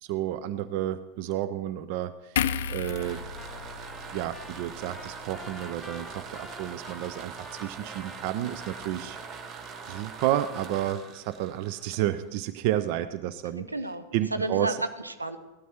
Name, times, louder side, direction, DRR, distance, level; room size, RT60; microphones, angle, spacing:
voice 1, 0.0-3.3 4.1-9.2 9.9-13.7 14.1-14.8, right 12 dB, 45° right, 13 dB, 0.6 m, -31 dB
Trumpet, 2.3-10.4, left 4 dB, 10° left, 0.6 m, -49 dB
sound 1, 2.4-5.7 6.1-6.3, left 8 dB, 60° left, 0.5 m, -34 dB
sound 2, 2.7-12.5, right 6 dB, 30° right, 1.2 m, -43 dB
voice 2, 13.6-15.4, right 2 dB, 80° right, 10 dB, 0.9 m, -32 dB
16.5 x 12.5 x 4.5 m, 1.1 s
figure-of-eight pair, 90°, 0 cm